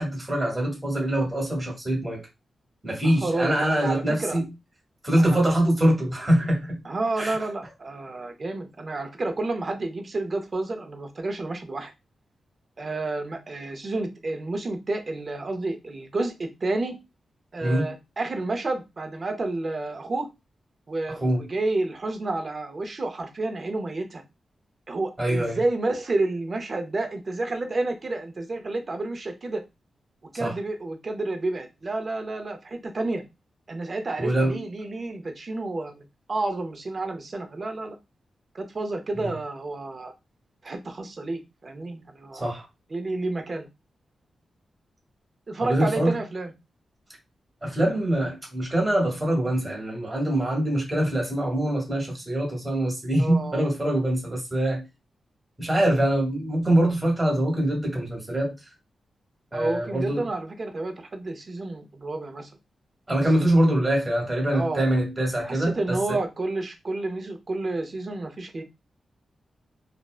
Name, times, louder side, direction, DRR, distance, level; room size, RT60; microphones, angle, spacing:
voice 1, 0.0-2.2 2.8-4.5 5.0-6.8 7.2-7.4 17.6-17.9 21.2-21.5 25.2-25.6 30.4-30.5 34.2-34.6 39.2-39.3 42.3-42.6 45.6-46.2 47.6-54.9 55.6-58.5 59.5-60.3 63.1-66.2, right 1 dB, 20° right, 1.1 m, -24 dB
voice 2, 3.0-4.4 5.2-5.6 6.8-11.9 12.8-16.9 17.5-20.3 20.9-24.2 24.9-29.6 30.3-33.2 33.7-36.0 36.3-38.0 38.5-40.1 40.6-42.5 42.9-43.7 45.5-46.5 53.2-53.7 59.5-62.5 64.5-64.8 65.4-68.6, right 2 dB, 40° right, 0.6 m, -30 dB
2.5 x 2.1 x 2.3 m
wide cardioid pair, 100°, 0 cm